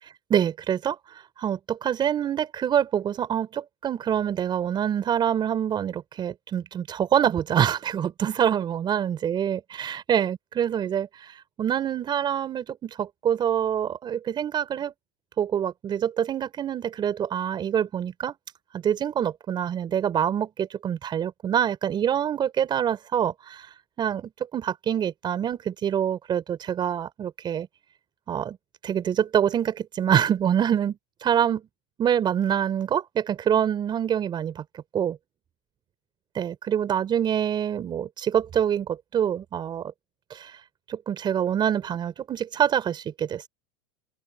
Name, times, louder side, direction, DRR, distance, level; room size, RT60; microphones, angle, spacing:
voice 1, 0.3-14.9 15.4-18.3 18.8-27.7 28.3-28.6 28.8-30.9 31.2-31.6 32.0-34.6 34.9-35.2 36.4-39.9 40.3-40.6 40.9-43.4, right 9 dB, 25° right, 5.7 m, -26 dB
open air
supercardioid pair, 145°, 17 cm